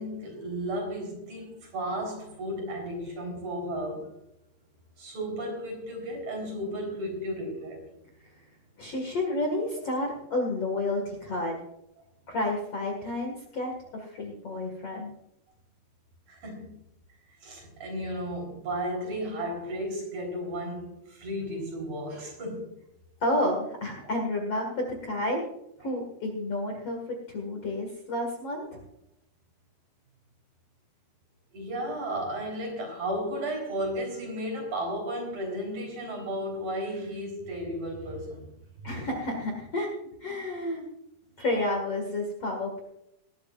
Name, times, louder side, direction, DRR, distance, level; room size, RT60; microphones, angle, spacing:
voice 1, 0.0-4.1 5.0-7.8 16.3-16.7 17.4-22.7 31.5-38.5 41.4-41.6, equal, 50° right, 5.3 m, -34 dB
voice 2, 8.8-11.6 12.3-15.1 23.2-25.4 25.8-27.0 27.3-28.8 38.8-39.9 40.2-40.8 41.4-42.8, left 1 dB, 45° left, 2.3 m, -30 dB
19.0 x 12.5 x 2.5 m
omnidirectional pair, 4.5 m